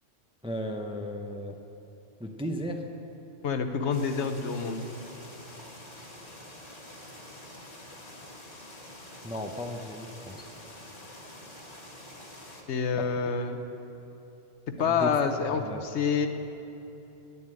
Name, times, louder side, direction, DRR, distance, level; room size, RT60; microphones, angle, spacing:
voice 1, 0.4-1.6 2.2-2.9 9.2-10.5 12.9-13.1 14.8-15.1 15.6-15.9, equal, 5° right, 4 dB, 0.5 m, -35 dB
voice 2, 3.4-4.8 12.7-13.6 14.8-16.3, left 6 dB, 70° left, 7 dB, 1.1 m, -27 dB
sound 1, 3.9-12.6, left 1 dB, 30° left, 1.6 m, -47 dB
11.0 x 9.5 x 8.8 m, 2.9 s
omnidirectional pair, 1.2 m